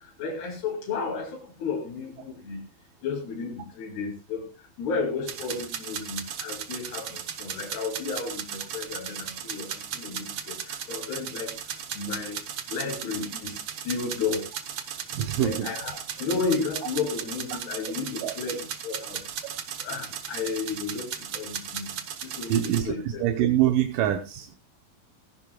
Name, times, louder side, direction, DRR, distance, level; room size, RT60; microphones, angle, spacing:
voice 1, 0.2-2.6 3.0-4.5 4.8-11.5 12.0-12.4 12.7-13.6 13.8-14.4 15.4-19.2 19.8-21.9 22.2-23.2, left 5 dB, 75° left, 0 dB, 4.6 m, -33 dB
sound 1, 5.3-22.8, right 8 dB, 85° right, 1.4 m, -36 dB
voice 2, 15.1-15.7 18.2-18.3 22.5-24.5, right 11 dB, 70° right, 5 dB, 2.2 m, -25 dB
17.0 x 15.5 x 2.3 m, 0.26 s
omnidirectional pair, 4.7 m